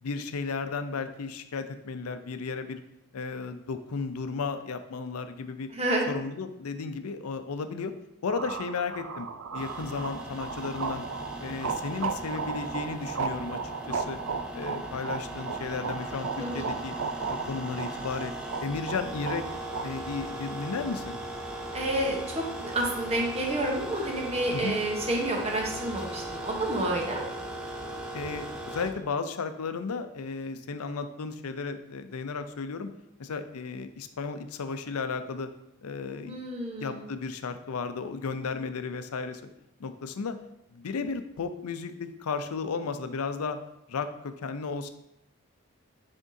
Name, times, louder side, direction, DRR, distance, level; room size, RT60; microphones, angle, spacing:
voice 1, 0.0-2.8 3.1-5.7 6.1-7.9 8.2-9.3 9.5-11.0 11.4-14.2 14.5-16.9 17.3-18.3 18.6-19.4 19.8-21.2 24.5-24.8 28.1-32.9 33.2-35.5 35.8-36.4 36.8-39.4 39.8-40.4 40.7-43.6 43.9-44.9, left 4 dB, 90° left, 9 dB, 0.5 m, -34 dB
voice 2, 5.7-6.0 16.4-16.7 21.7-27.2 36.2-37.0, right 1 dB, 30° right, 0 dB, 0.9 m, -29 dB
sound 1, 8.3-19.8, right 5 dB, 70° right, 0.5 m, -35 dB
sound 2, 9.5-28.9, right 1 dB, 5° right, 0.5 m, -39 dB
9.9 x 3.6 x 2.7 m, 0.83 s
head